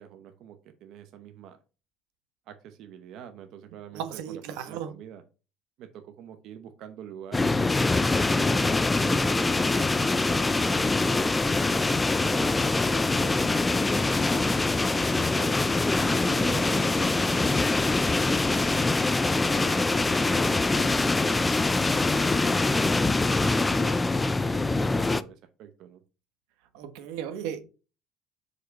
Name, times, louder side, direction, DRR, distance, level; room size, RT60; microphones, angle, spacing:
voice 1, 0.0-1.6 2.5-5.2 5.8-7.8 8.2-15.6 16.1-19.0 19.5-24.0 24.5-26.0, right 9 dB, 55° right, 0.8 m, -45 dB
voice 2, 3.9-4.9 26.7-27.6, right 9 dB, 90° right, 1.2 m, -35 dB
sound 1, 7.3-25.2, left 3 dB, 10° left, 0.4 m, -24 dB
6.6 x 5.1 x 4.1 m
cardioid pair, 145°, 0 cm